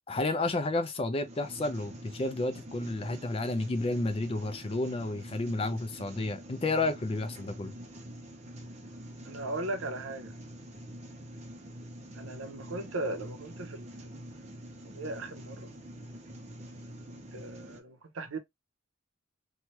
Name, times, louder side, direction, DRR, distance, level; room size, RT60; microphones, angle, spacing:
voice 1, 0.1-7.7, left 2 dB, 25° left, 0.4 m, -31 dB
sound 1, 1.2-17.8, equal, 35° right, 0.5 m, -46 dB
voice 2, 9.3-10.3 12.1-13.9 14.9-15.7 17.1-18.4, right 2 dB, 85° right, 0.7 m, -38 dB
3.1 x 2.2 x 2.8 m
head